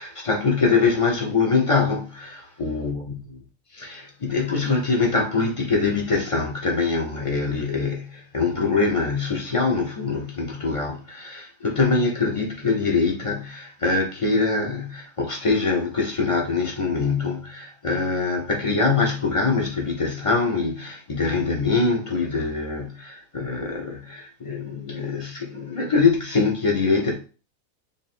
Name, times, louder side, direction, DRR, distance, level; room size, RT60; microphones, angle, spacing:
voice 1, 0.0-3.1 3.7-27.2, left 4 dB, 35° left, 0.5 m, -23 dB
3.3 x 2.5 x 4.1 m
omnidirectional pair, 1.5 m